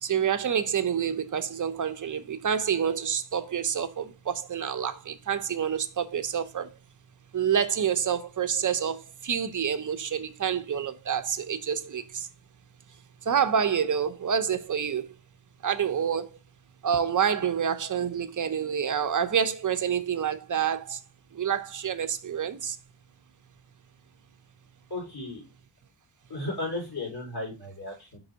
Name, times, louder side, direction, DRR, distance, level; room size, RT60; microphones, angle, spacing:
voice 1, 0.0-6.7 7.3-12.2 13.3-15.1 15.6-16.3 16.8-21.0 21.4-22.7, right 8 dB, 40° right, 0.7 m, -28 dB
voice 2, 24.9-25.4 26.3-28.2, left 2 dB, 55° left, 4.2 m, -35 dB
5.4 x 4.0 x 4.9 m
wide cardioid pair, 115°, 46 cm